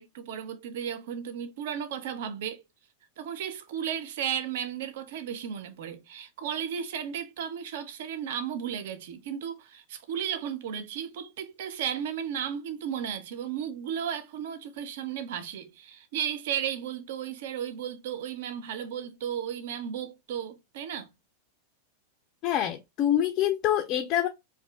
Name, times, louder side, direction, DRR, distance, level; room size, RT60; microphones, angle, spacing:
voice 1, 0.0-2.6 3.2-21.1, right 8 dB, 55° right, 0.4 m, -34 dB
voice 2, 22.4-24.3, left 11 dB, 40° left, 0.3 m, -26 dB
2.6 x 2.4 x 3.2 m
figure-of-eight pair, 90°, 0 cm